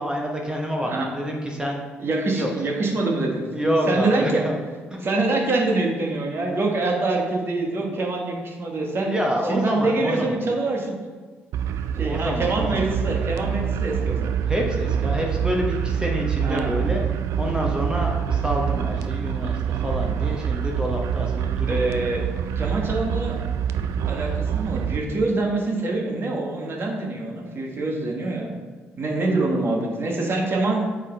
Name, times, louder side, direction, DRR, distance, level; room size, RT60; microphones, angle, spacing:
voice 1, 0.0-1.8 2.3-2.5 3.5-4.6 4.9-5.1 9.0-10.3 11.9-12.9 14.5-17.0 17.4-21.8, equal, 15° right, 0 dB, 1.0 m, -27 dB
voice 2, 2.0-3.4 3.9-4.4 5.0-9.1 9.5-10.9 12.0-14.4 16.4-16.7 21.3-22.2 22.6-23.4 24.1-28.5 29.0-30.8, right 2 dB, 45° right, 0 dB, 1.3 m, -25 dB
sound 1, 11.5-25.0, right 8 dB, 60° right, 0.3 m, -26 dB
8.1 x 3.8 x 3.4 m, 1.5 s
figure-of-eight pair, 45°, 6 cm